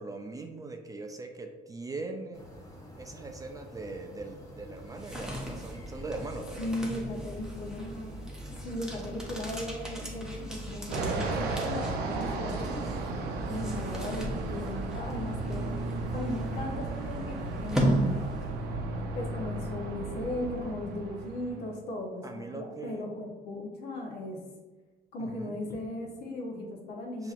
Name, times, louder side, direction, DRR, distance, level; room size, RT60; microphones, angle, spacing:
voice 1, 0.0-2.5 3.0-6.7 22.2-23.0 25.2-25.6 27.2-27.3, right 3 dB, 20° right, 4 dB, 0.3 m, -41 dB
sound 1, 2.3-11.3, equal, 20° left, 0.9 m, -48 dB
sound 2, 4.9-18.8, right 1 dB, 5° right, 0.7 m, -36 dB
voice 2, 6.6-8.2 8.6-12.8 13.4-15.7 16.1-18.2 19.1-24.4 25.1-27.3, left 1 dB, 75° left, 0 dB, 0.8 m, -37 dB
Fixed-wing aircraft airplane, 10.9-21.8, right 3 dB, 75° right, 0.6 m, -35 dB
5.7 x 2.8 x 2.4 m, 1.2 s
cardioid pair, 110°, 17 cm